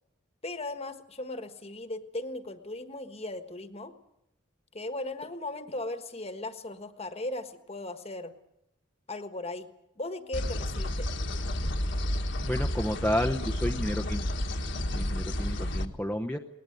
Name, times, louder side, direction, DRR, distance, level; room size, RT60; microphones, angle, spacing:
voice 1, 0.4-3.9 4.7-8.3 9.1-9.7 10.0-11.1, left 2 dB, 30° left, 9 dB, 1.4 m, -37 dB
sound 1, 10.3-15.8, left 1 dB, 60° left, 1.5 m, -31 dB
voice 2, 12.4-14.3 14.9-16.4, equal, 5° left, 2 dB, 0.8 m, -31 dB
20.5 x 19.0 x 9.4 m, 0.83 s
head